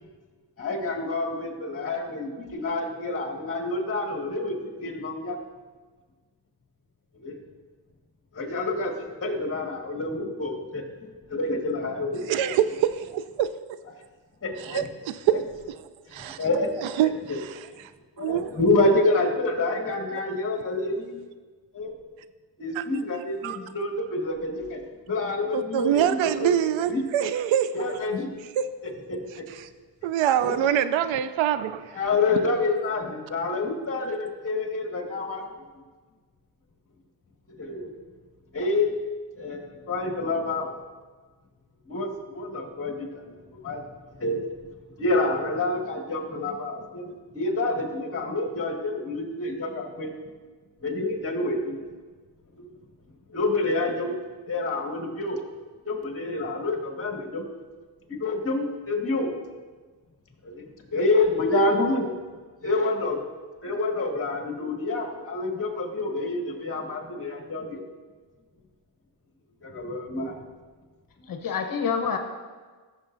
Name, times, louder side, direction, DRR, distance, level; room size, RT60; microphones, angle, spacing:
voice 1, 0.6-5.4 7.2-7.4 8.3-12.3 14.4-14.8 16.1-16.8 17.0-17.4 18.2-21.2 21.7-22.0 22.6-26.5 26.8-27.0 27.7-28.3 29.1-29.5 30.4-30.6 31.9-35.6 37.6-37.9 38.5-38.9 39.4-40.7 41.9-43.9 44.2-44.5 45.0-50.1 50.8-51.8 52.6-52.7 53.3-54.1 54.5-55.4 55.9-57.4 58.1-59.3 60.4-60.6 60.9-62.1 62.6-63.2 63.6-67.8 69.6-70.3, left 2 dB, 30° left, 1 dB, 1.8 m, -28 dB
voice 2, 12.3-13.8 14.6-15.5 16.1-16.4 16.8-17.6 18.2-18.5 22.8-22.9 23.4-23.6 25.5-27.8 28.6-28.7 30.0-32.0, right 10 dB, 75° right, 13 dB, 0.6 m, -25 dB
voice 3, 71.2-72.2, left 6 dB, 45° left, 5 dB, 1.0 m, -27 dB
14.5 x 7.0 x 2.6 m, 1.4 s
cardioid pair, 105°, 47 cm